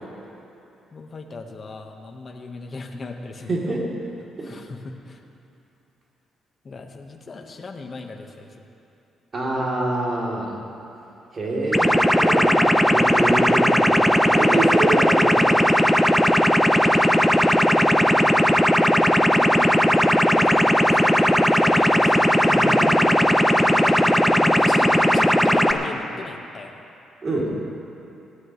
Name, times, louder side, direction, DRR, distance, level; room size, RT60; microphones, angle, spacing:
voice 1, 0.9-3.7 4.4-5.2 6.6-8.6 17.1-22.2 23.7-26.8, left 3 dB, 40° left, 2 dB, 1.5 m, -37 dB
voice 2, 3.5-3.8 4.4-4.5 9.3-10.6 11.3-15.7 22.4-23.0 23.5-23.7 27.2-27.5, right 2 dB, 40° right, -4 dB, 3.3 m, -26 dB
sound 1, 11.7-25.7, equal, ahead, 0.8 m, -17 dB
19.0 x 14.5 x 3.3 m, 2.8 s
cardioid pair, 90°, 0 cm